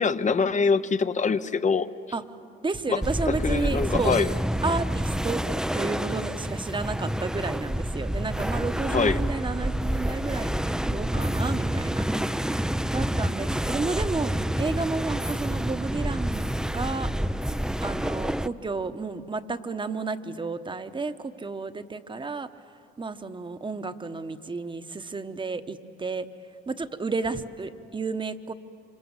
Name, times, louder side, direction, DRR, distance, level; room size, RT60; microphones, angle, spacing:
voice 1, 0.0-1.9 2.9-3.0 3.3-4.3 8.9-9.2, left 5 dB, 40° left, 12 dB, 0.8 m, -24 dB
voice 2, 2.6-4.2 4.6-5.4 5.7-16.5 16.7-17.1 17.8-22.5 23.0-26.3 26.7-28.5, right 3 dB, 25° right, 10 dB, 1.1 m, -32 dB
sound 1, 3.0-18.5, equal, 5° right, 0.5 m, -28 dB
26.5 x 26.5 x 7.4 m, 2.6 s
cardioid pair, 90°, 20 cm